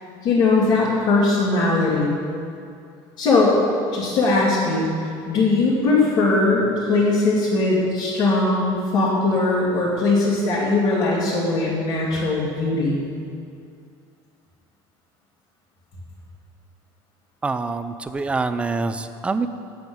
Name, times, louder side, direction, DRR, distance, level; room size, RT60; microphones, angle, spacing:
voice 1, 0.2-2.2 3.2-3.6 3.9-4.9 5.3-13.0, left 3 dB, 45° left, -9 dB, 2.5 m, -20 dB
voice 2, 17.4-19.5, right 3 dB, 10° right, 10 dB, 0.4 m, -25 dB
8.3 x 8.0 x 8.7 m, 2.4 s
cardioid pair, 155°, 10 cm